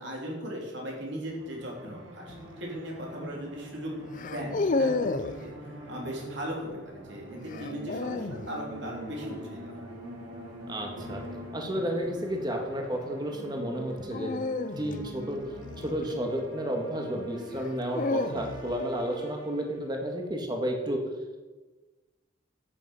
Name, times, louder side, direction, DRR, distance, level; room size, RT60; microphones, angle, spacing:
voice 1, 0.0-2.3 2.6-4.1 4.3-5.5 5.9-9.9, equal, 60° right, -2 dB, 3.7 m, -38 dB
sound 1, 1.3-20.0, right 1 dB, 85° right, 3.7 m, -45 dB
sound 2, 2.3-2.6 4.1-5.4 7.5-8.5 10.9-11.3 14.1-16.5 17.5-18.8, left 3 dB, 40° left, 0.5 m, -32 dB
voice 2, 10.7-11.2 11.5-14.3 14.8-15.4 15.8-21.0, equal, 20° right, 2 dB, 1.9 m, -32 dB
11.0 x 9.5 x 5.7 m, 1.2 s
head